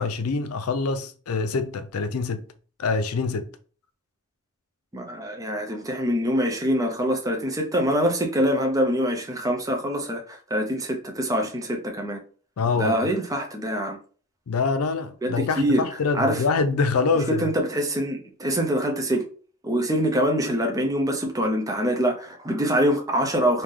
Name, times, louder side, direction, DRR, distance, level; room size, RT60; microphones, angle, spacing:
voice 1, 0.0-2.5 2.8-3.5 12.6-13.0 14.5-17.5, left 4 dB, 85° left, 0.5 m, -25 dB
voice 2, 4.9-12.2 12.8-14.0 15.2-15.9 16.1-16.4 17.3-19.3 19.6-23.6, equal, 15° right, 0.6 m, -24 dB
3.4 x 2.7 x 3.6 m
head